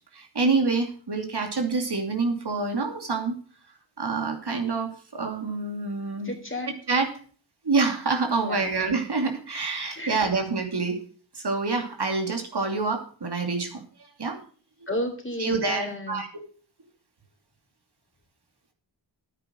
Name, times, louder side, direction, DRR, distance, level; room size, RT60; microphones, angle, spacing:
voice 1, 0.1-3.4 4.0-6.3 6.7-7.1 7.6-11.0 11.3-13.8 14.2-14.4 15.4-16.3, right 4 dB, 60° right, 4 dB, 2.7 m, -27 dB
voice 2, 6.2-6.7 8.4-8.7 9.9-10.2 14.9-16.2, left 1 dB, 25° left, 4 dB, 3.4 m, -32 dB
10.0 x 8.9 x 6.3 m, 0.42 s
cardioid pair, 55°, 45 cm